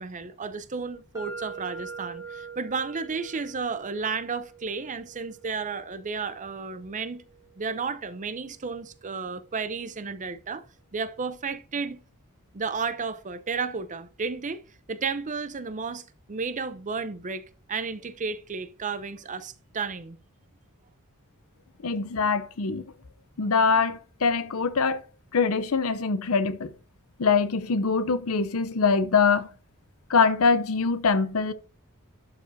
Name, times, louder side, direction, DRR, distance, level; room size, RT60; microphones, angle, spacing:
voice 1, 0.0-7.2 7.6-10.6 10.9-12.0 12.5-14.6 14.9-16.0 16.3-20.2, right 5 dB, 35° right, 0.6 m, -32 dB
sound 1, 1.1-9.0, right 5 dB, 15° right, 1.6 m, -45 dB
voice 2, 21.8-22.8 23.4-25.0 25.3-26.7 27.2-29.5 30.1-31.5, left 5 dB, 70° left, 0.7 m, -23 dB
11.5 x 4.9 x 2.7 m
head